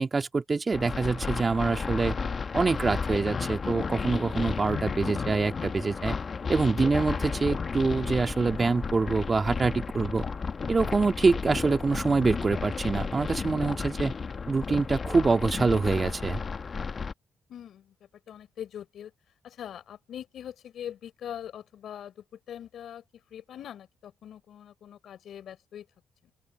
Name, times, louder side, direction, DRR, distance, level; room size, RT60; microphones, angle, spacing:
voice 1, 0.0-2.2 2.5-6.2 6.5-10.3 10.7-14.1 14.5-16.4, right 4 dB, 30° right, 1.8 m, -25 dB
sound 1, 0.7-17.1, left 5 dB, 40° left, 1.2 m, -33 dB
voice 2, 17.5-17.9 18.3-19.1 19.4-23.0 23.3-25.9, left 10 dB, 70° left, 4.9 m, -42 dB
open air
cardioid pair, 90°, 0 cm